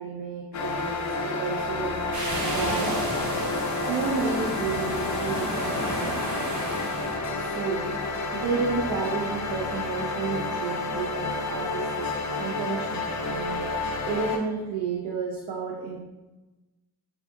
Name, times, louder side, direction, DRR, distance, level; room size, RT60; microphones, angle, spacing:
voice 1, 0.0-1.9 2.4-2.9 3.3-6.2 7.3-7.9 8.3-12.1 12.4-16.0, right 5 dB, 85° right, -2 dB, 0.7 m, -32 dB
sound 1, 0.5-14.4, left 3 dB, 45° left, 0.5 m, -30 dB
sound 2, 2.1-7.2, right 1 dB, 45° right, 1.3 m, -32 dB
6.5 x 2.7 x 2.7 m, 1.1 s
wide cardioid pair, 165°, 40 cm